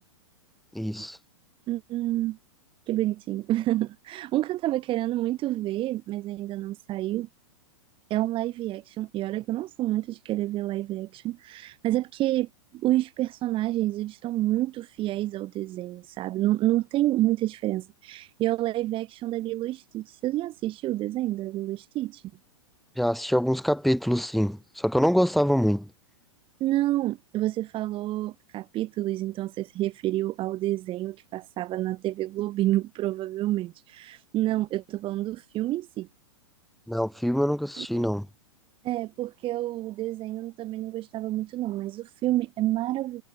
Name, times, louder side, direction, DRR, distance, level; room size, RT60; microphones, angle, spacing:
voice 1, 0.7-1.2 23.0-25.9 36.9-38.3, equal, ahead, 4.8 m, -25 dB
voice 2, 1.7-2.4 2.9-7.3 8.1-12.5 12.7-22.2 26.6-36.1 37.8-38.0 38.8-43.2, right 15 dB, 30° right, 1.5 m, -28 dB
hypercardioid pair, 115°, 17 cm